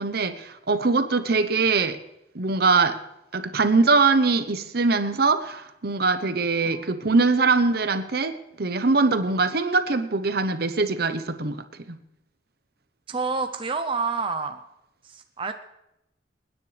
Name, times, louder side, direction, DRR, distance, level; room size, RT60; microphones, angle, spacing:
voice 1, 0.0-2.0 2.3-3.0 3.3-11.6 11.9-12.0, right 4 dB, 60° right, 10 dB, 0.9 m, -22 dB
voice 2, 6.6-7.1 13.1-14.6 15.0-15.5, right 4 dB, 30° right, 7 dB, 0.6 m, -29 dB
27.0 x 9.7 x 3.4 m, 0.87 s
head